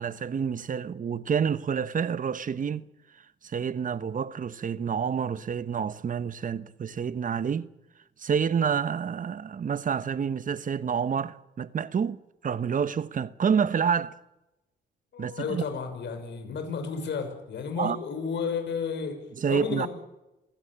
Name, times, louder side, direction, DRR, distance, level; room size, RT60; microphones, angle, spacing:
voice 1, 0.0-2.9 3.4-7.7 8.2-14.2 15.2-15.6 17.8-18.0 19.4-19.9, right 7 dB, 40° right, 1.1 m, -28 dB
voice 2, 15.1-19.2 19.4-19.9, left 5 dB, 65° left, 6.3 m, -32 dB
26.5 x 16.5 x 8.8 m
cardioid pair, 90°, 20 cm